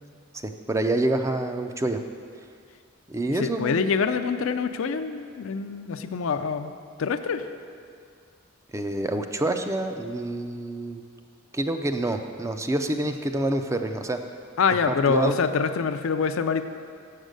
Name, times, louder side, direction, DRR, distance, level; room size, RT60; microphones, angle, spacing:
voice 1, 0.4-2.0 3.1-3.8 8.7-11.0 11.5-14.2 14.9-15.3, right 2 dB, 15° right, 6 dB, 0.4 m, -27 dB
voice 2, 3.4-6.7 7.0-7.5 14.6-16.6, left 5 dB, 75° left, 9 dB, 0.4 m, -25 dB
7.2 x 6.5 x 6.3 m, 2.2 s
head